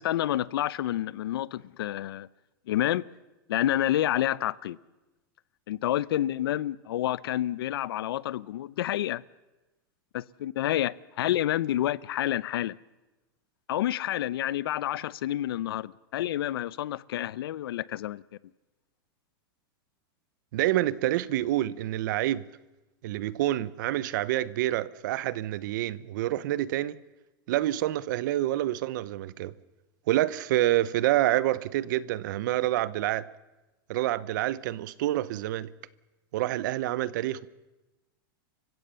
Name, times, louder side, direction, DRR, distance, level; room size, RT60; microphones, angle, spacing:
voice 1, 0.0-2.3 2.7-3.1 3.5-4.8 5.7-9.2 10.1-12.8 13.7-18.2, left 13 dB, 80° left, 0.7 m, -29 dB
voice 2, 20.5-22.5 23.0-27.0 27.5-29.5 30.1-33.3 33.9-35.7 36.3-37.5, right 14 dB, 55° right, 0.8 m, -27 dB
29.5 x 16.0 x 6.9 m
supercardioid pair, 170°, 12 cm